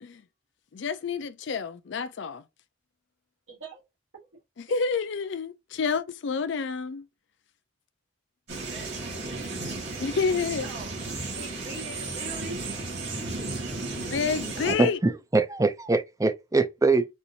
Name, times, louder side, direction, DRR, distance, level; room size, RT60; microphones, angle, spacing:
voice 1, 0.7-2.4 4.6-7.1 10.0-10.7 14.0-15.0, left 5 dB, 60° left, 0.4 m, -29 dB
voice 2, 3.5-3.8 8.6-9.4 10.6-10.9 11.3-12.6, right 2 dB, 80° right, 1.7 m, -41 dB
sound 1, 8.5-14.7, right 3 dB, 55° right, 2.0 m, -34 dB
voice 3, 14.7-17.1, right 3 dB, 15° right, 0.4 m, -23 dB
4.2 x 2.6 x 2.6 m
head